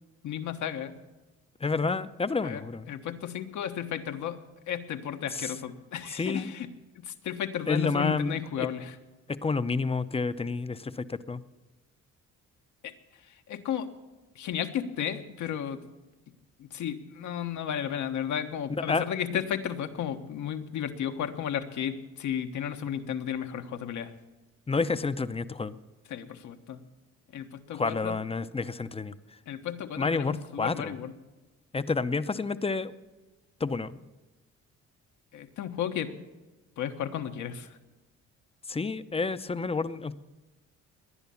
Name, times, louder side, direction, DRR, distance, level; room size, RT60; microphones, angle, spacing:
voice 1, 0.2-1.0 2.4-4.4 4.7-6.7 6.9-9.0 12.8-13.9 14.3-15.8 16.6-24.1 26.1-26.8 27.3-28.2 29.5-31.1 35.3-36.1 36.8-37.8, left 9 dB, 75° left, 6 dB, 1.3 m, -34 dB
voice 2, 1.6-2.9 6.2-6.5 7.7-8.3 8.6-8.7 9.4-11.4 18.9-19.0 19.3-19.4 24.7-25.8 27.7-29.1 30.0-30.9 31.7-32.9 33.6-34.0 38.7-40.1, left 4 dB, 20° left, 13 dB, 0.7 m, -29 dB
19.0 x 10.5 x 7.1 m, 1.1 s
cardioid pair, 90°, 30 cm